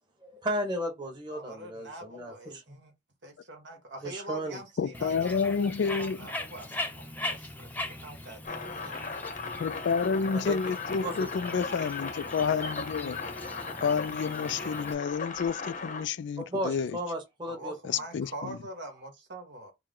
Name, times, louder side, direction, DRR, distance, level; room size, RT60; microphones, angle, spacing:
voice 1, 0.2-2.8 4.0-4.6 10.4-10.6 11.0-11.3 16.4-17.7, equal, 25° right, 1.3 m, -34 dB
voice 2, 1.3-2.9 3.2-5.7 6.0-9.0 16.0-16.1 17.5-19.7, right 1 dB, 70° right, 1.6 m, -44 dB
voice 3, 4.8-6.3 9.6-13.2 13.8-17.0 17.9-18.6, left 6 dB, 70° left, 0.3 m, -29 dB
Bird, 4.9-14.9, left 2 dB, 10° left, 0.7 m, -40 dB
sound 1, 8.4-16.0, left 4 dB, 45° left, 0.8 m, -37 dB
4.6 x 2.2 x 3.7 m
head